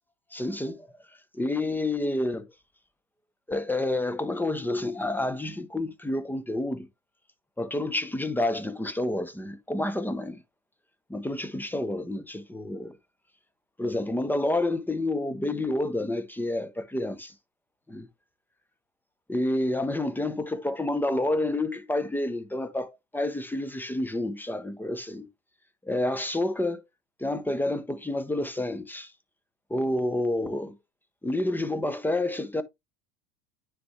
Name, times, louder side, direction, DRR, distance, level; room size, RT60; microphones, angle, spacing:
voice 1, 0.3-0.9 1.3-2.5 3.5-6.9 7.6-10.4 11.1-13.0 13.8-17.3 17.9-18.1 19.3-25.3 25.8-26.8 27.2-29.1 29.7-30.8 31.2-32.6, left 1 dB, 5° left, 0.8 m, -29 dB
9.5 x 3.2 x 3.3 m
hypercardioid pair, 95°, 37 cm